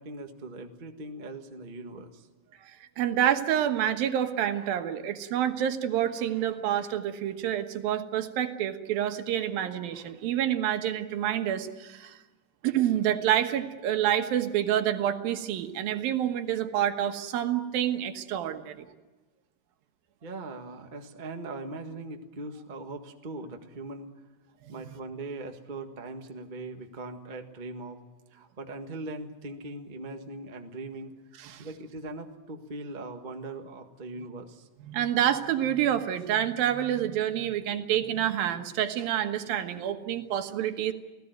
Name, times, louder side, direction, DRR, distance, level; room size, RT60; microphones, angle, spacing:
voice 1, 0.0-2.3 20.2-24.1 24.7-28.0 28.3-31.1 31.6-34.7, right 2 dB, 40° right, 5 dB, 0.6 m, -40 dB
voice 2, 2.7-12.2 12.6-18.9 24.7-24.8 31.4-31.7 34.8-40.9, right 10 dB, 90° right, 7 dB, 3.2 m, -28 dB
29.0 x 17.5 x 9.3 m, 1.2 s
omnidirectional pair, 4.1 m